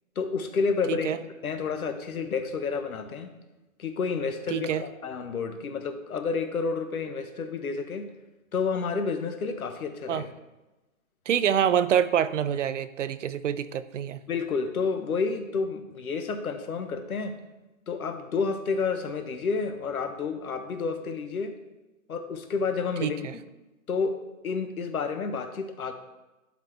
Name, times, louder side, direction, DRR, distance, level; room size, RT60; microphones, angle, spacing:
voice 1, 0.2-3.3 3.8-8.1 8.5-10.3 14.3-17.3 17.9-21.5 22.1-23.3 23.9-24.2 24.4-25.9, left 5 dB, 90° left, 7 dB, 1.1 m, -30 dB
voice 2, 0.9-1.2 4.5-4.8 10.1-10.2 11.3-14.2 23.0-23.3, right 9 dB, 60° right, 14 dB, 0.5 m, -26 dB
11.5 x 4.1 x 3.3 m, 1.1 s
hypercardioid pair, 160°, 42 cm